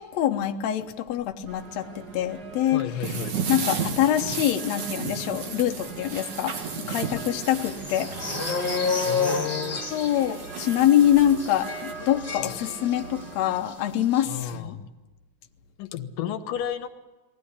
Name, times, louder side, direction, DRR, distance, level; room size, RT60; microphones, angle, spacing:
voice 1, 0.0-3.1 3.5-8.1 9.9-14.7, left 11 dB, 65° left, 4 dB, 2.0 m, -25 dB
sound 1, 1.5-13.6, right 5 dB, 35° right, 1.8 m, -42 dB
voice 2, 2.7-3.3 7.2-7.3 9.1-9.8 12.4-12.6 14.2-14.8 15.8-16.9, left 9 dB, 85° left, 8 dB, 2.8 m, -32 dB
sound 2, 3.0-11.9, right 6 dB, 65° right, 3.3 m, -34 dB
sound 3, 6.5-13.3 13.5-13.7 14.0-14.3, left 5 dB, 15° left, 2.7 m, -31 dB
22.0 x 16.0 x 9.9 m, 1.2 s
omnidirectional pair, 3.8 m